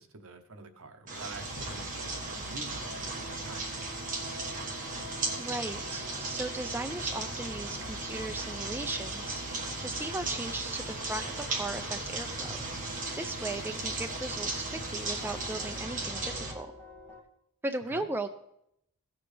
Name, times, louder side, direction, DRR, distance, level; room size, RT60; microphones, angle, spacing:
voice 1, 0.0-3.7 17.9-18.0, right 3 dB, 65° right, 6 dB, 1.0 m, -46 dB
sound 1, 1.1-15.9, left 2 dB, 85° left, 1.3 m, -50 dB
sound 2, 1.1-16.5, right 2 dB, 35° right, 1.6 m, -36 dB
sound 3, 2.7-17.2, right 1 dB, 10° left, 2.2 m, -49 dB
voice 2, 5.4-9.4 9.8-12.7 13.2-16.7 17.6-18.3, right 2 dB, 10° right, 6 dB, 0.3 m, -37 dB
16.5 x 7.0 x 3.3 m, 0.78 s
head